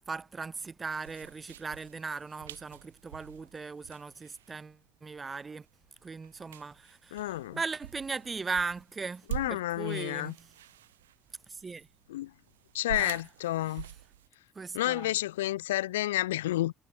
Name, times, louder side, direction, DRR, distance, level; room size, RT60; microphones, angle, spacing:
voice 1, 0.1-5.7 6.0-10.5 11.5-11.9 12.9-13.2 14.5-15.1, right 4 dB, 25° right, 3.3 m, -38 dB
sound 1, 1.0-14.3, right 12 dB, 75° right, 3.7 m, -46 dB
voice 2, 7.1-7.6 9.3-10.3 12.1-12.3 12.7-13.9 14.7-16.7, left 15 dB, 75° left, 0.6 m, -30 dB
figure-of-eight pair, 55°, 0 cm